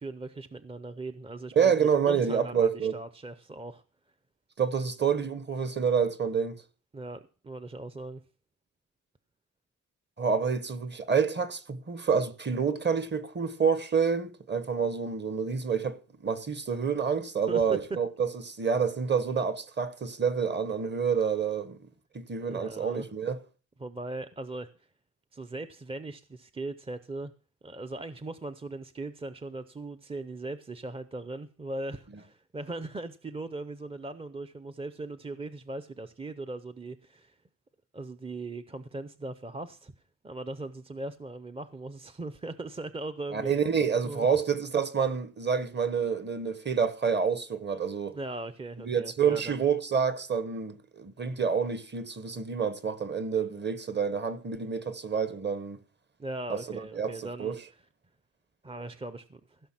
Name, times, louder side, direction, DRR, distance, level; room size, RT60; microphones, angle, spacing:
voice 1, 0.0-3.8 6.9-8.2 17.5-17.8 22.5-23.1 23.8-24.9 25.3-27.3 27.6-37.4 37.9-39.9 40.2-43.6 44.0-44.3 48.1-49.6 56.2-57.6 58.6-59.6, right 2 dB, 20° right, 0.5 m, -39 dB
voice 2, 1.6-3.0 4.6-6.6 10.2-16.0 16.2-21.8 22.1-23.4 43.3-48.2 48.8-55.8 56.7-57.6, right 6 dB, 35° right, 1.0 m, -28 dB
16.0 x 6.0 x 7.3 m
wide cardioid pair, 140°, 32 cm